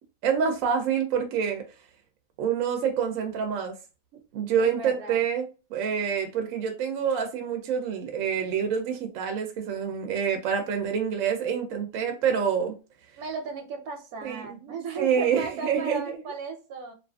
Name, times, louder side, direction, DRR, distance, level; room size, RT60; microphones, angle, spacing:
voice 1, 0.2-1.6 2.4-3.7 4.3-12.7 14.2-14.5 15.0-16.0, right 7 dB, 70° right, 0.9 m, -27 dB
voice 2, 4.6-5.2 13.2-16.9, right 4 dB, 90° right, 1.2 m, -36 dB
2.6 x 2.5 x 2.2 m
omnidirectional pair, 1.5 m